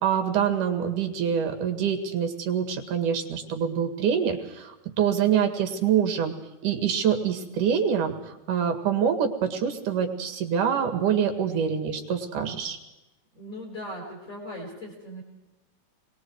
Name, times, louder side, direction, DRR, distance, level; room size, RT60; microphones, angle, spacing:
voice 1, 0.0-6.4 6.6-12.8, right 8 dB, 80° right, 5 dB, 3.7 m, -25 dB
voice 2, 13.3-15.2, equal, 25° left, -2 dB, 6.2 m, -38 dB
27.5 x 21.5 x 4.8 m, 1.0 s
omnidirectional pair, 3.6 m